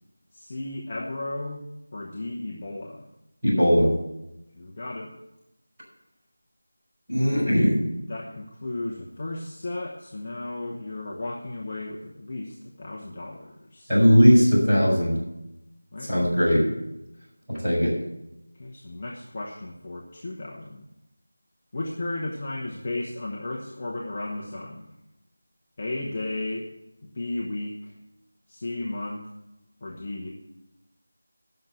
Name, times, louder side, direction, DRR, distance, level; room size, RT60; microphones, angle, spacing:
voice 1, 0.3-1.6 1.9-3.0 4.6-5.1 8.1-13.9 15.9-16.1 18.6-20.8 21.7-24.8 25.8-26.7 27.1-27.9 28.5-29.2 29.8-30.3, left 2 dB, 20° left, -3 dB, 0.8 m, -34 dB
voice 2, 3.4-3.9 7.1-7.8 13.9-15.1 16.1-16.6 17.5-17.9, equal, 10° right, -13 dB, 5.2 m, -19 dB
11.0 x 6.4 x 9.0 m, 0.91 s
figure-of-eight pair, 180°, 0 cm